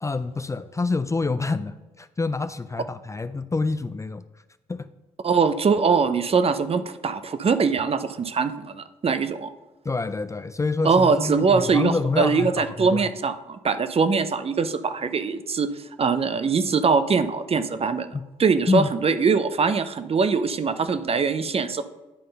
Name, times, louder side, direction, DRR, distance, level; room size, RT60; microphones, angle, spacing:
voice 1, 0.0-4.2 4.7-4.9 9.8-13.1 18.1-18.2 18.7-18.9, left 3 dB, 20° left, 12 dB, 0.4 m, -27 dB
voice 2, 5.2-9.5 10.8-15.7 16.0-18.1 18.4-21.9, right 5 dB, 40° right, 11 dB, 0.6 m, -22 dB
10.0 x 3.8 x 5.2 m, 1.1 s
supercardioid pair, 55°, 15 cm